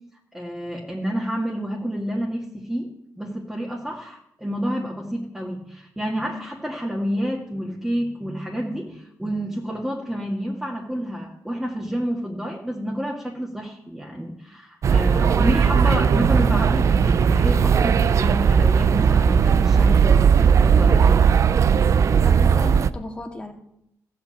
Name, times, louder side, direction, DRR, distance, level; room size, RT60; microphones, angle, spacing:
voice 1, 0.3-21.3, equal, 5° right, -2 dB, 2.1 m, -29 dB
sound 1, 14.8-22.9, right 6 dB, 55° right, 0.5 m, -17 dB
voice 2, 22.2-23.5, left 1 dB, 15° left, 2 dB, 2.2 m, -34 dB
15.0 x 5.9 x 8.7 m, 0.76 s
cardioid pair, 105°, 6 cm